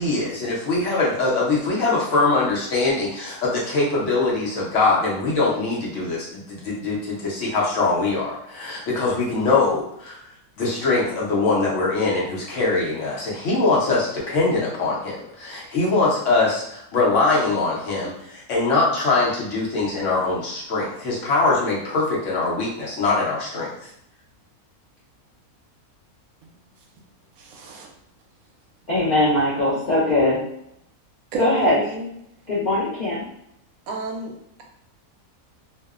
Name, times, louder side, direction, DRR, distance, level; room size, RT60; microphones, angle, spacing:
voice 1, 0.0-10.2 10.6-23.7, left 3 dB, 60° left, -4 dB, 0.9 m, -22 dB
voice 2, 27.4-27.9 31.3-32.1 33.9-34.3, right 2 dB, 75° right, 1 dB, 1.0 m, -30 dB
voice 3, 28.9-30.4 31.4-31.8 32.5-33.3, left 1 dB, 80° left, -7 dB, 0.4 m, -20 dB
2.7 x 2.0 x 2.3 m, 0.75 s
omnidirectional pair, 1.6 m